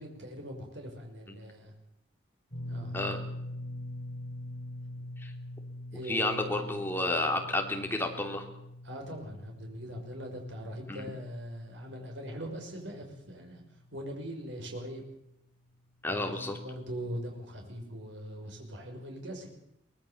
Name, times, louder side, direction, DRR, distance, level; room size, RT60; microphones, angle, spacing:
voice 1, 0.0-1.7 2.7-3.0 5.0-5.1 5.9-6.8 8.8-13.6 13.9-15.1 16.0-19.5, equal, 70° right, 2 dB, 6.0 m, -41 dB
sound 1, 2.5-14.7 15.0-15.2 16.9-17.0, left 1 dB, 45° left, 5.3 m, -44 dB
voice 2, 6.1-8.4 10.9-11.0 16.0-16.6, left 2 dB, 10° left, 3 dB, 3.1 m, -31 dB
23.5 x 19.0 x 7.3 m, 0.81 s
head